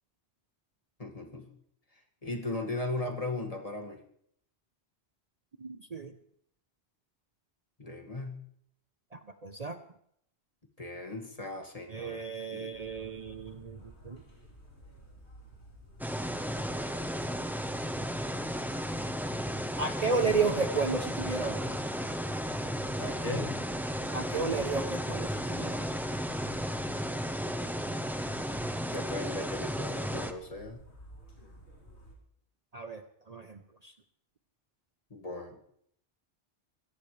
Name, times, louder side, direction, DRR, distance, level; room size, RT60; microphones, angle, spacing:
voice 1, 1.0-1.5 2.2-4.0 7.8-8.4 10.8-12.2 12.5-12.7 23.0-23.6 28.9-30.8 35.1-35.6, left 2 dB, 35° left, 1 dB, 2.3 m, -37 dB
voice 2, 5.6-6.1 9.1-9.8 11.9-14.2 19.8-21.7 24.1-26.0 32.7-33.9, right 4 dB, 40° right, 8 dB, 0.9 m, -33 dB
sound 1, 12.7-32.1, equal, 75° left, 4.1 m, -53 dB
sound 2, 16.0-30.3, equal, ahead, 1.0 m, -34 dB
24.5 x 17.0 x 3.4 m, 0.69 s
omnidirectional pair, 1.1 m